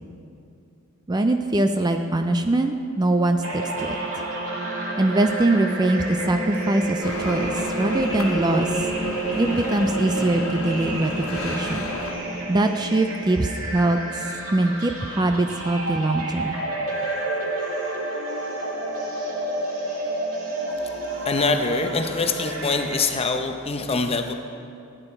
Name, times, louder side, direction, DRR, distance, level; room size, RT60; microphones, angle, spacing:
voice 1, 1.1-4.0 5.0-8.9 9.4-11.9 12.5-14.3 14.5-16.6, right 2 dB, 20° right, 6 dB, 0.4 m, -22 dB
sound 1, 3.4-23.0, right 2 dB, 65° right, 2.1 m, -30 dB
sound 2, 7.0-12.1, left 1 dB, 80° left, 1.4 m, -33 dB
voice 2, 21.2-24.3, left 3 dB, 25° left, 6 dB, 0.7 m, -24 dB
15.0 x 9.0 x 4.4 m, 2.6 s
head